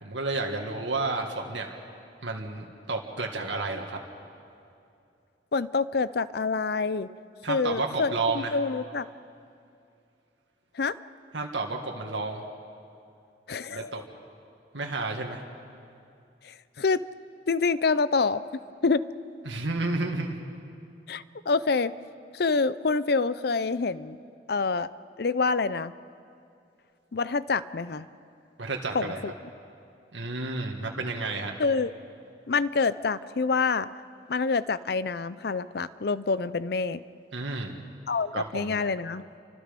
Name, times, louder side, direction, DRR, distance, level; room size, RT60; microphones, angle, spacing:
voice 1, 0.0-1.7 2.2-4.0 7.4-8.6 11.3-12.4 13.7-14.0 14.7-15.4 19.5-20.4 28.6-29.2 30.1-31.6 37.3-37.7 38.3-38.7, right 3 dB, 90° right, 2 dB, 2.0 m, -31 dB
voice 2, 5.5-7.1 7.5-9.1 10.8-10.9 13.5-14.0 16.4-17.0 17.5-18.4 18.8-19.0 21.1-21.9 22.3-24.2 24.5-24.9 25.2-25.9 27.1-28.1 28.9-29.3 31.6-31.9 32.5-33.9 34.3-37.0 38.1-39.2, left 4 dB, 60° left, 16 dB, 0.6 m, -27 dB
29.5 x 25.0 x 5.3 m, 2.6 s
head